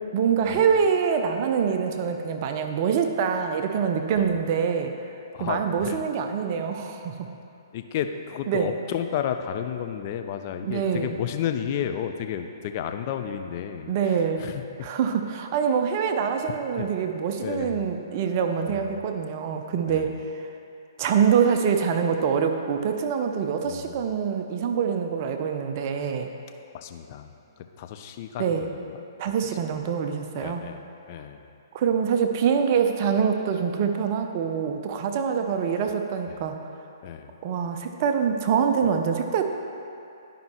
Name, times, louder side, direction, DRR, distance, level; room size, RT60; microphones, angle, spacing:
voice 1, 0.1-4.9 5.4-7.2 8.5-8.7 10.6-11.1 13.9-14.5 14.8-20.1 21.0-26.3 28.4-28.7 29.2-30.6 31.7-36.5 37.4-39.4, right 7 dB, 40° right, 5 dB, 0.5 m, -25 dB
voice 2, 5.3-6.0 7.7-14.9 16.8-16.9 17.4-17.9 18.7-19.0 19.9-20.2 23.6-24.0 26.7-27.3 27.6-29.9 30.4-31.6 35.8-35.9 36.3-36.5 37.0-37.3, left 9 dB, 40° left, 7 dB, 0.5 m, -33 dB
11.5 x 5.3 x 3.0 m, 2.6 s
hypercardioid pair, 130°, 2 cm